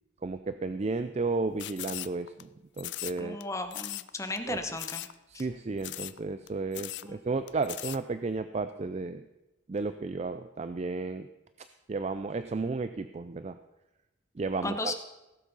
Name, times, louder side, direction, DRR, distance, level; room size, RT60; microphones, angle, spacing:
voice 1, 0.2-2.5 2.8-3.4 4.5-4.6 5.3-9.2 9.7-11.3 11.9-13.6 14.4-14.9, right 3 dB, 35° right, 11 dB, 0.4 m, -33 dB
sound 1, 1.6-2.4 2.8-3.4 3.7-4.1 4.4-4.5 4.8-5.1 5.4-5.5 5.8-6.2 6.5-6.6 6.7-7.1 7.5-8.0, left 16 dB, 60° left, 0.4 m, -38 dB
voice 2, 3.2-5.1 5.3-5.5 7.0-7.2 14.6-14.9, left 2 dB, 15° left, 7 dB, 0.9 m, -35 dB
16.5 x 7.6 x 5.4 m, 0.99 s
head